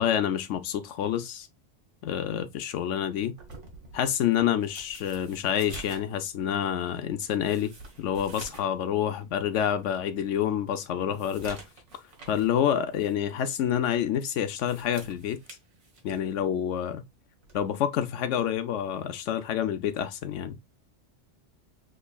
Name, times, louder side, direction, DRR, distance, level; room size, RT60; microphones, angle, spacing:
voice 1, 0.0-1.5 2.0-3.3 3.9-7.7 8.0-11.6 12.3-15.4 16.0-17.0 17.5-20.6, left 9 dB, 90° left, 1.0 m, -28 dB
sound 1, 3.4-8.8 9.1-9.2 9.8-9.9 10.3-12.6 12.9-13.1 14.4-16.3 17.4-17.7, right 3 dB, 90° right, 1.6 m, -47 dB
6.3 x 3.0 x 2.2 m
omnidirectional pair, 1.2 m